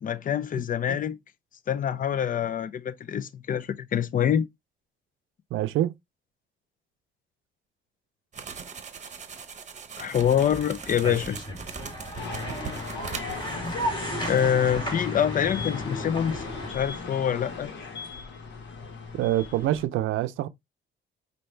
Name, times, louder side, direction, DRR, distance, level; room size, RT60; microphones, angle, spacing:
voice 1, 0.0-1.2 1.7-4.5 10.0-11.4 14.3-17.7, left 9 dB, 45° left, 0.5 m, -26 dB
voice 2, 5.5-5.9 19.1-20.5, right 13 dB, 80° right, 0.5 m, -25 dB
sound 1, 8.3-13.9 14.2-14.4, right 6 dB, 35° right, 1.0 m, -40 dB
sound 2, 10.2-16.7, equal, 25° left, 2.8 m, -35 dB
sound 3, 12.2-19.9, left 4 dB, 65° left, 1.4 m, -37 dB
5.4 x 2.6 x 3.2 m
cardioid pair, 90°, 20 cm